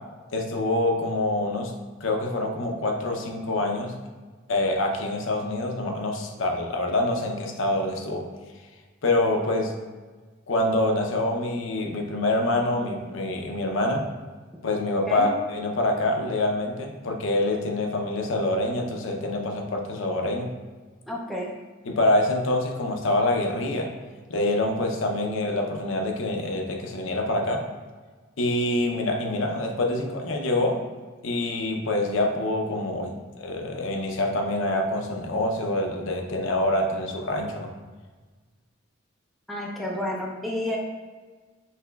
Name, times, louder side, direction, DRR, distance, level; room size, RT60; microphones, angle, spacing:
voice 1, 0.3-1.7 2.0-3.9 4.5-8.2 9.0-9.7 10.5-14.0 14.6-20.5 21.9-23.9 24.3-27.6 28.4-30.8 31.2-37.7, left 1 dB, 65° left, 2 dB, 0.6 m, -26 dB
voice 2, 21.1-21.5 39.5-40.8, left 1 dB, ahead, -3 dB, 0.5 m, -30 dB
5.7 x 2.9 x 2.3 m, 1.4 s
head